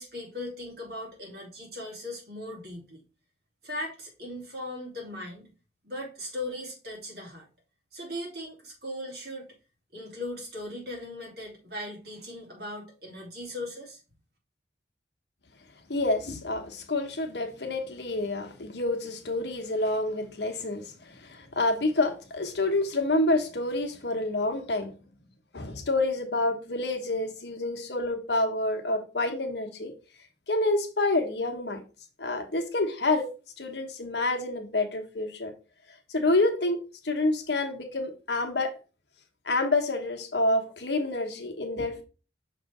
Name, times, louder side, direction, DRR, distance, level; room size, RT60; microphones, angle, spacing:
voice 1, 0.0-3.0 3.6-5.5 5.8-7.5 7.9-9.5 9.9-14.0, left 1 dB, 60° right, 2.6 m, -38 dB
voice 2, 15.9-24.9 25.5-29.9 30.5-31.8 32.2-33.3 33.6-35.5 36.1-36.8 37.0-38.8 39.4-42.0, left 2 dB, 65° left, 1.2 m, -28 dB
6.3 x 3.3 x 4.8 m
head